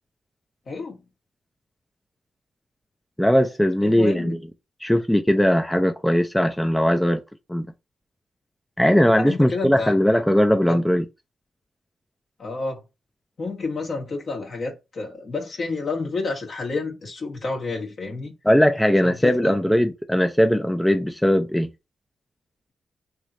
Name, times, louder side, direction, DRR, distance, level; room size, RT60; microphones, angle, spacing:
voice 1, 0.7-1.0 3.8-4.4 9.1-9.9 10.7-10.8 12.4-12.8 13.4-18.3 19.0-19.6, left 3 dB, 60° left, 1.4 m, -30 dB
voice 2, 3.2-4.4 4.8-7.2 7.5-7.7 8.8-11.0 18.5-21.7, equal, 5° left, 0.5 m, -19 dB
3.2 x 3.0 x 2.6 m
supercardioid pair, 50°, 0 cm